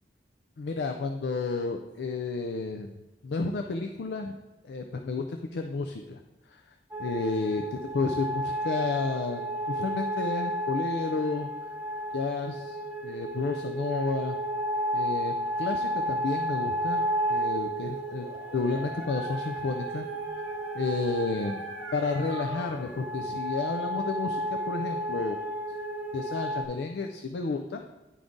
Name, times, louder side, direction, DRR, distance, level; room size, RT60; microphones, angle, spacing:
voice 1, 0.6-2.9 3.2-4.4 4.7-6.2 6.5-6.6 7.0-11.5 12.1-14.4 14.9-17.0 17.3-18.3 18.5-20.1 20.7-21.6 21.9-25.4 26.1-27.8, left 3 dB, 70° left, 4 dB, 0.4 m, -31 dB
sound 1, 6.9-26.6, right 1 dB, 10° right, 0.5 m, -32 dB
Dog, 18.0-23.0, right 3 dB, 35° right, 1.2 m, -41 dB
10.0 x 3.6 x 3.8 m, 1.1 s
head